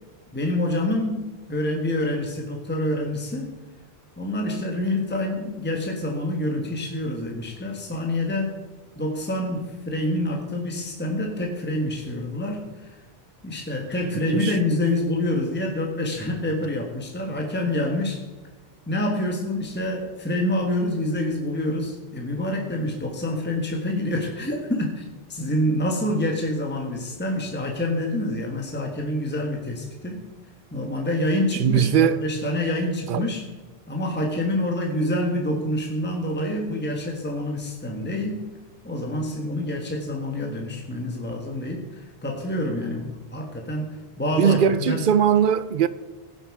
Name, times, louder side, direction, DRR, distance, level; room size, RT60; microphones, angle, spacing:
voice 1, 0.3-3.5 4.2-8.6 8.9-13.0 13.4-18.2 18.9-25.0 25.3-30.3 30.7-33.4 33.9-38.4 38.8-45.0, left 1 dB, 10° left, 1.4 m, -27 dB
voice 2, 14.1-14.6 31.5-32.2 33.1-33.3 44.4-45.9, right 8 dB, 60° right, 0.7 m, -20 dB
16.5 x 7.8 x 4.8 m
omnidirectional pair, 1.1 m